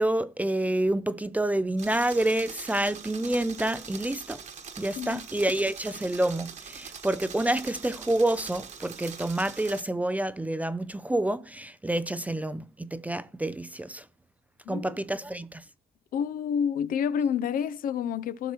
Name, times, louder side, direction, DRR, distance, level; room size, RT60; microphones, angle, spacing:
voice 1, 0.0-4.4 4.8-14.0 14.7-15.6, right 1 dB, 10° right, 0.4 m, -28 dB
sound 1, 1.8-9.8, right 6 dB, 45° right, 1.3 m, -43 dB
voice 2, 5.0-5.3 14.7-15.0 16.1-18.5, left 8 dB, 55° left, 0.5 m, -29 dB
15.0 x 5.9 x 3.0 m
cardioid pair, 110°, 17 cm